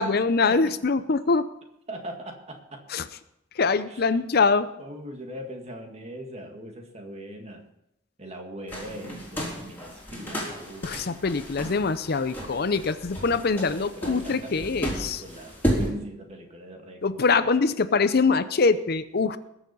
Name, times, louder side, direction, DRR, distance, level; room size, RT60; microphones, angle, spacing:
voice 1, 0.0-1.5 2.9-3.0 3.6-4.7 10.8-15.2 17.0-19.4, left 4 dB, 50° left, 13 dB, 0.6 m, -23 dB
voice 2, 1.9-2.9 3.9-4.0 4.8-7.7 8.2-11.0 13.2-17.5, right 1 dB, 35° right, 3 dB, 2.0 m, -40 dB
sound 1, 8.7-15.9, equal, 10° left, 3.8 m, -33 dB
20.5 x 7.1 x 5.4 m, 0.83 s
head